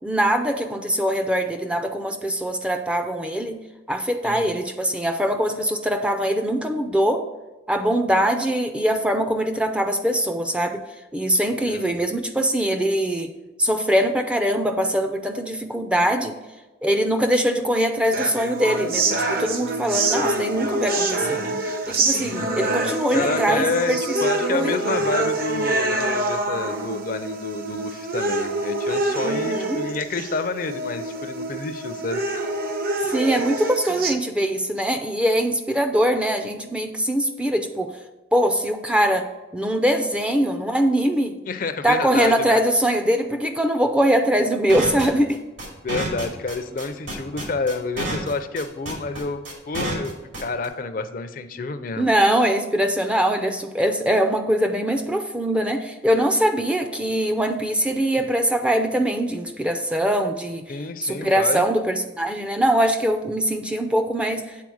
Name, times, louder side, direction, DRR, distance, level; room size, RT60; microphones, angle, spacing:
voice 1, 0.0-3.6 3.9-7.3 7.7-10.8 11.1-13.3 13.6-16.3 16.8-21.4 21.9-24.0 24.4-24.7 29.2-29.8 33.0-37.9 38.3-41.4 41.8-45.4 52.0-60.6 61.0-64.4, equal, 5° right, 6 dB, 0.4 m, -22 dB
voice 2, 4.2-4.6 11.5-11.9 21.2-21.6 23.1-32.2 41.5-42.6 45.8-50.1 50.4-52.1 58.2-58.3 60.7-61.6, left 3 dB, 45° left, 10 dB, 0.5 m, -29 dB
sound 1, 18.1-34.1, right 2 dB, 50° right, 0.8 m, -26 dB
sound 2, 44.7-50.7, right 1 dB, 80° right, 3.0 m, -29 dB
8.3 x 4.1 x 6.2 m, 1.2 s
head